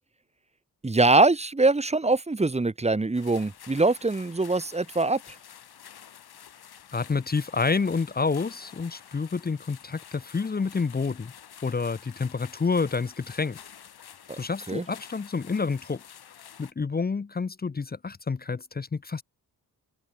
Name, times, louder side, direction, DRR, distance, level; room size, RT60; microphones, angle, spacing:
voice 1, 0.8-5.2 14.3-14.4 14.7-14.9, right 3 dB, 15° right, 2.2 m, -23 dB
sound 1, 3.1-16.7, left 9 dB, 75° left, 5.1 m, -49 dB
voice 2, 6.9-11.3 11.6-13.6 14.4-16.0 16.6-19.2, left 4 dB, 25° left, 0.9 m, -28 dB
wide cardioid pair, 150°, 39 cm